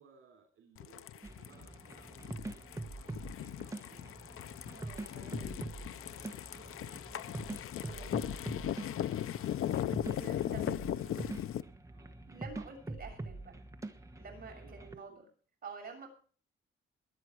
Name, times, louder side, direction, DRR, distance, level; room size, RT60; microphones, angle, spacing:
voice 1, 0.0-4.0 5.0-7.2 7.8-9.1 10.0-10.6 10.9-11.3 11.9-12.1 14.5-15.2, right 6 dB, 75° right, 2 dB, 3.5 m, -61 dB
sound 1, 0.8-11.6, left 11 dB, 85° left, 0.7 m, -38 dB
sound 2, 1.2-15.0, right 2 dB, 15° right, 1.3 m, -45 dB
voice 2, 4.7-5.6 7.8-8.1 10.1-10.8 12.3-13.5 14.2-15.2 15.6-16.1, right 4 dB, 45° right, 2 dB, 6.8 m, -48 dB
22.0 x 8.9 x 4.7 m, 0.43 s
wide cardioid pair, 160°, 21 cm